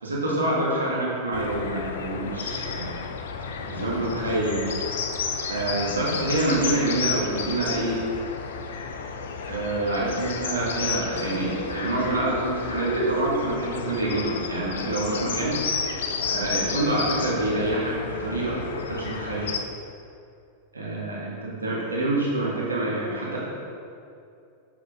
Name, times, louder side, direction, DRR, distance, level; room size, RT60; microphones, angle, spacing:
voice 1, 0.0-2.9 3.7-4.6 5.5-8.0 9.5-15.6 16.2-19.5 20.7-23.4, right 2 dB, 75° right, -5 dB, 1.8 m, -26 dB
sound 1, 1.3-19.6, left 5 dB, 60° left, 0.6 m, -32 dB
6.9 x 6.6 x 3.6 m, 2.5 s
figure-of-eight pair, 90°, 0 cm